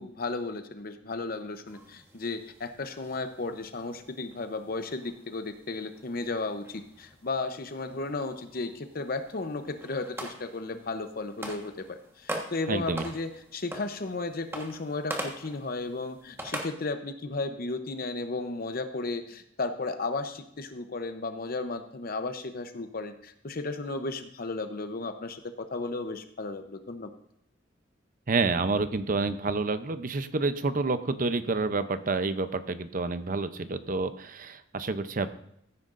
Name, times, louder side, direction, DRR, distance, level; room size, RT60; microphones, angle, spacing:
voice 1, 0.0-27.1, left 3 dB, 50° left, 8 dB, 0.7 m, -34 dB
sound 1, 1.6-16.6, right 1 dB, 15° right, 1.3 m, -43 dB
voice 2, 12.7-13.0 28.3-35.3, right 3 dB, 45° right, 11 dB, 0.6 m, -29 dB
15.5 x 9.4 x 2.5 m, 0.73 s
head